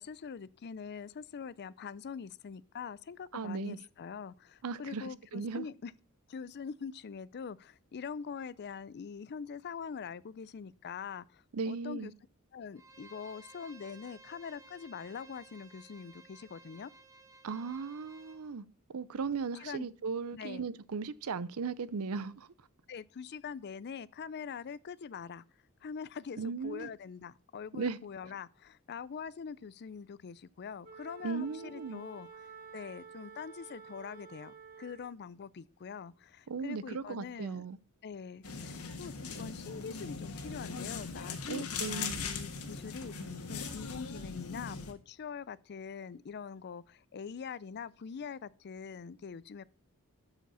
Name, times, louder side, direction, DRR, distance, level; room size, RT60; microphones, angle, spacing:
voice 1, 0.0-5.9 6.3-12.1 12.5-16.9 19.6-19.9 20.3-20.7 22.9-25.4 25.8-32.3 32.7-37.6 38.0-49.6, left 6 dB, 50° left, 0.4 m, -44 dB
voice 2, 3.3-3.8 4.6-5.7 11.5-12.1 17.4-22.5 26.4-26.9 27.7-28.0 31.2-32.0 36.5-37.8 41.5-42.2, right 5 dB, 75° right, 0.6 m, -37 dB
Bowed string instrument, 12.7-18.4, right 2 dB, 15° right, 1.5 m, -56 dB
Wind instrument woodwind instrument, 30.8-35.2, right 6 dB, 40° right, 2.1 m, -51 dB
sound 1, 38.4-44.9, left 5 dB, 90° left, 1.6 m, -40 dB
13.0 x 5.0 x 5.5 m
head